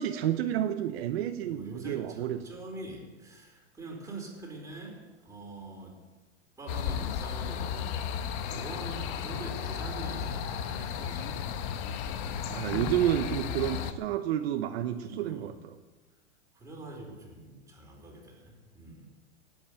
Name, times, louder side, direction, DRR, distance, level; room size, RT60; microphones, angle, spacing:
voice 1, 0.0-2.4 12.5-15.8, right 11 dB, 60° right, 7 dB, 1.1 m, -30 dB
voice 2, 1.3-5.0 5.2-5.9 6.6-8.1 8.4-11.6 12.1-12.4 13.6-13.8 15.0-15.5 16.6-19.1, right 2 dB, 10° right, -1 dB, 4.4 m, -44 dB
sound 1, 6.7-13.9, left 8 dB, 40° left, 1.3 m, -34 dB
17.5 x 8.6 x 9.1 m, 1.2 s
hypercardioid pair, 140°, 36 cm